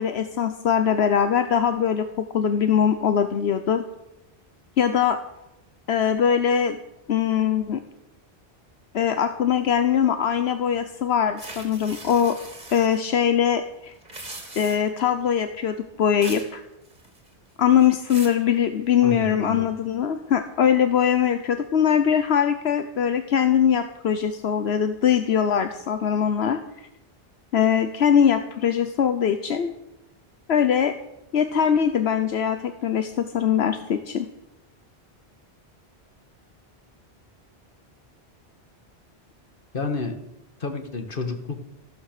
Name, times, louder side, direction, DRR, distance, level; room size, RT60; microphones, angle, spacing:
voice 1, 0.0-3.8 4.8-5.2 5.9-6.8 7.1-7.8 8.9-12.4 12.7-13.9 14.5-16.6 17.6-26.6 27.5-29.7 30.5-30.9 31.3-34.3, left 8 dB, 80° left, 9 dB, 1.1 m, -22 dB
sound 1, 11.4-13.0 14.0-15.0 16.2-16.5 16.9-17.3 17.8-18.4, right 2 dB, 40° right, 2.7 m, -40 dB
voice 2, 19.0-19.7 39.7-40.2 40.6-41.6, left 4 dB, 55° left, 7 dB, 1.9 m, -30 dB
15.0 x 12.5 x 6.7 m, 0.90 s
omnidirectional pair, 1.1 m